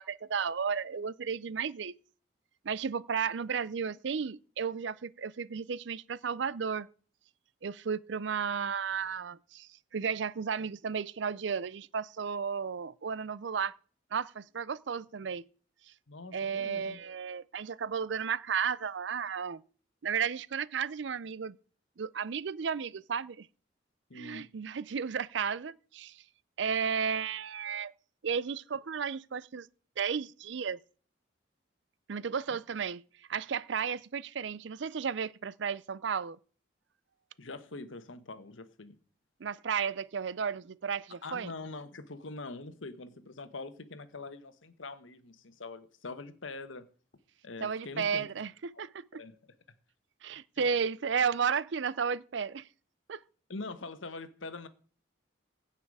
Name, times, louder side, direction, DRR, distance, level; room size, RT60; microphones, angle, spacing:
voice 1, 0.0-1.9 2.6-6.9 7.6-13.7 14.1-15.4 16.3-19.6 20.0-21.6 22.0-23.5 24.1-26.2 26.6-27.9 28.2-29.7 30.0-30.8 32.1-33.0 33.3-36.4 39.4-41.5 47.6-49.2 50.2-52.7 53.1-53.2, right 6 dB, 70° right, 0.5 m, -33 dB
voice 2, 16.1-17.0 24.1-24.5 32.5-32.6 37.4-39.0 41.2-46.8 47.4-48.3 48.7-48.9 49.1-49.3 50.6-50.7 53.5-54.7, left 3 dB, 85° left, 1.2 m, -43 dB
16.0 x 5.8 x 4.8 m
head